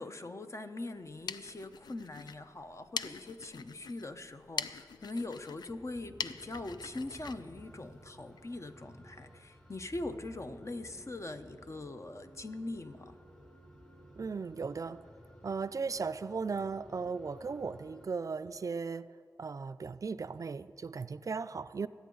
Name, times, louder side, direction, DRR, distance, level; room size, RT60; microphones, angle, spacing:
voice 1, 0.0-13.2, left 2 dB, 45° left, 8 dB, 0.8 m, -42 dB
sound 1, 1.0-8.5, left 6 dB, 90° left, 0.3 m, -44 dB
sound 2, 5.7-18.1, equal, 20° left, 3.6 m, -55 dB
voice 2, 14.2-15.0 15.4-19.1 19.4-21.9, right 5 dB, 55° right, 14 dB, 0.3 m, -37 dB
21.0 x 8.5 x 3.9 m, 2.4 s
cardioid pair, 40°, 7 cm